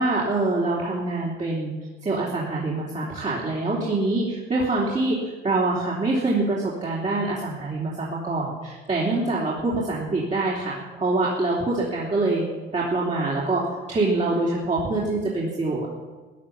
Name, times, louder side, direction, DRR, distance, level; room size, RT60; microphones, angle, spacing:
voice 1, 0.0-1.7 2.0-12.5 12.7-13.6 13.9-15.9, right 2 dB, 35° right, -5 dB, 3.5 m, -25 dB
16.0 x 9.9 x 7.3 m, 1.3 s
cardioid pair, 90°, 20 cm